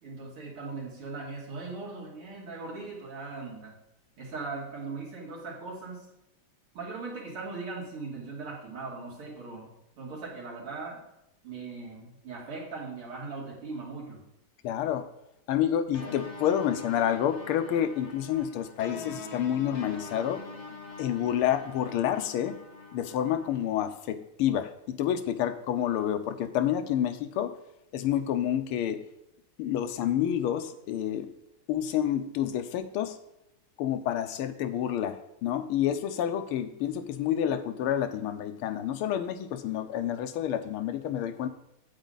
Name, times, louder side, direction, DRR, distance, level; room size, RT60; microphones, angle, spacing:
voice 1, 0.0-3.7 4.2-6.1 6.7-9.7 10.0-11.0 11.4-14.2, right 3 dB, 85° right, -4 dB, 3.4 m, -39 dB
voice 2, 14.6-15.0 15.5-20.4 21.0-22.6 22.9-27.5 27.9-29.0 29.6-31.3 31.7-33.2 33.8-41.5, left 10 dB, 90° left, 9 dB, 1.6 m, -29 dB
sound 1, 15.9-23.6, left 3 dB, 35° left, 1.0 m, -44 dB
8.8 x 8.1 x 3.9 m, 0.84 s
omnidirectional pair, 2.3 m